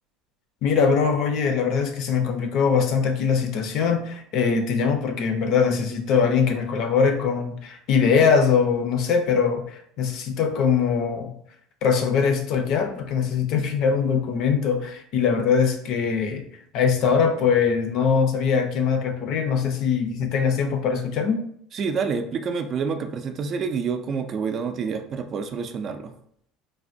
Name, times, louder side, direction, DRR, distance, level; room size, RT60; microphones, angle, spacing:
voice 1, 0.6-11.3 11.8-16.4 16.7-21.4, left 6 dB, 60° left, 5 dB, 0.5 m, -22 dB
voice 2, 21.7-26.1, right 5 dB, 40° right, 7 dB, 0.3 m, -28 dB
3.3 x 2.1 x 2.5 m, 0.68 s
supercardioid pair, 110°, 0 cm